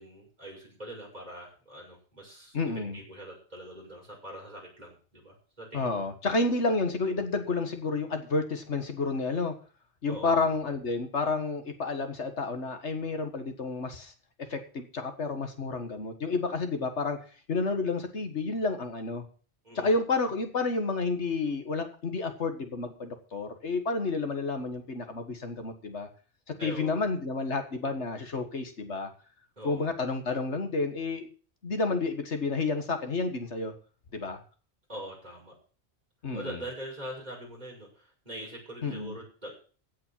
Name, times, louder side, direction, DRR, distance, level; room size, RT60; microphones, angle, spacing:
voice 1, 0.0-2.6 2.9-6.0 10.1-10.4 19.6-19.9 26.6-27.0 29.6-29.8 34.9-35.5 36.3-39.5, right 1 dB, 40° right, -2 dB, 6.6 m, -43 dB
voice 2, 2.5-3.0 5.7-9.5 10.0-14.1 14.5-17.2 17.5-19.2 19.8-26.1 26.6-29.1 29.6-31.3 31.6-33.7 34.1-34.4 36.2-36.6 38.8-39.2, left 3 dB, 80° left, 6 dB, 2.0 m, -30 dB
16.0 x 5.8 x 7.5 m, 0.39 s
omnidirectional pair, 1.2 m